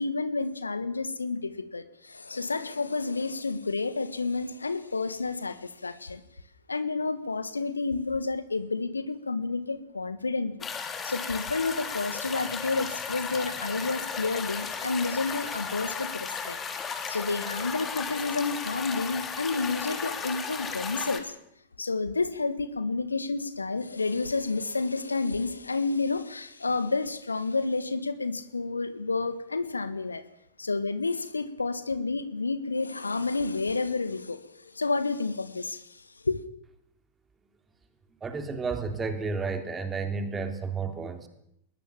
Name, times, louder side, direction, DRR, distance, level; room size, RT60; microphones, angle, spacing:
voice 1, 0.0-6.2 6.7-10.7 11.0-16.6 17.1-21.3 21.8-30.2 30.6-36.4, left 3 dB, 80° left, 13 dB, 1.7 m, -30 dB
sound 1, 10.6-21.2, left 6 dB, 20° left, 3.2 m, -35 dB
voice 2, 38.2-41.3, right 4 dB, 15° right, 7 dB, 3.6 m, -32 dB
21.0 x 20.5 x 7.3 m, 0.74 s
figure-of-eight pair, 90°, 0 cm